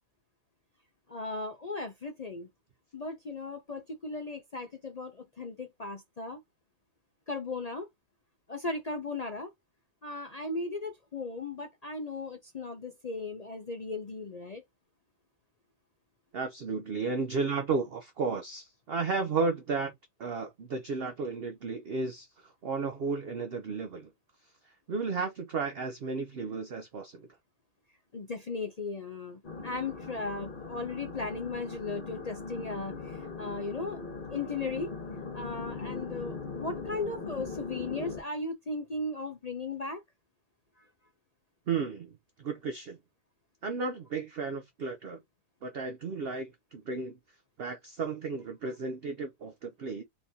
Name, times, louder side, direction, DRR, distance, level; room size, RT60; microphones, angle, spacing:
voice 1, 1.1-2.5 2.9-6.4 7.3-7.9 8.5-9.5 10.0-14.6 28.1-34.0 34.3-34.9 35.3-40.0, left 3 dB, 55° left, 0.4 m, -37 dB
voice 2, 16.3-19.9 20.2-24.1 24.9-27.2 41.7-42.1 42.4-43.0 43.6-45.2 45.6-47.2 47.6-50.0, right 4 dB, 55° right, 0.7 m, -33 dB
sound 1, 29.4-38.2, left 4 dB, 35° left, 1.2 m, -40 dB
4.3 x 3.4 x 2.7 m
omnidirectional pair, 1.6 m